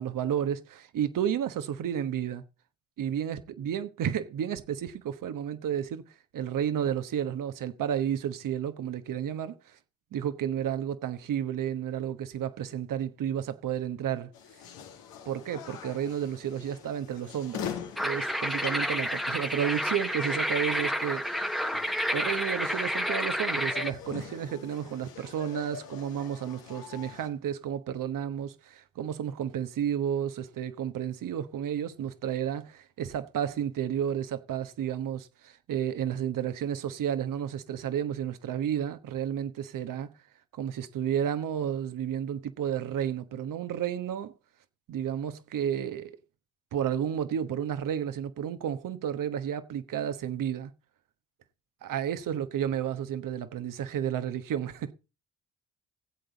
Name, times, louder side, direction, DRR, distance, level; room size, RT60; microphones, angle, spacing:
voice 1, 0.0-2.4 3.0-6.0 6.3-9.8 10.1-14.3 15.3-17.7 18.0-21.2 22.1-40.1 40.6-44.3 44.9-46.1 46.7-50.7 51.8-54.9, right 9 dB, 65° right, 1.2 m, -32 dB
sound 1, 14.3-27.3, left 8 dB, 85° left, 1.6 m, -44 dB
sound 2, 18.0-23.9, equal, ahead, 1.0 m, -30 dB
17.0 x 8.0 x 4.0 m
supercardioid pair, 55°, 34 cm